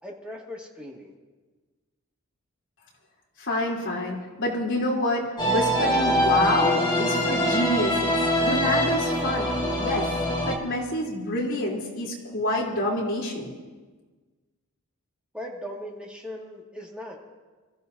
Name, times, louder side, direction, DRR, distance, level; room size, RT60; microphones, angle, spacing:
voice 1, 0.0-1.1 15.3-17.2, left 1 dB, 5° right, -3 dB, 2.2 m, -38 dB
voice 2, 3.4-10.1 10.5-13.5, left 1 dB, 55° left, -4 dB, 3.5 m, -27 dB
sound 1, 5.4-10.6, equal, 20° left, 1.9 m, -24 dB
26.5 x 14.5 x 2.8 m, 1.3 s
head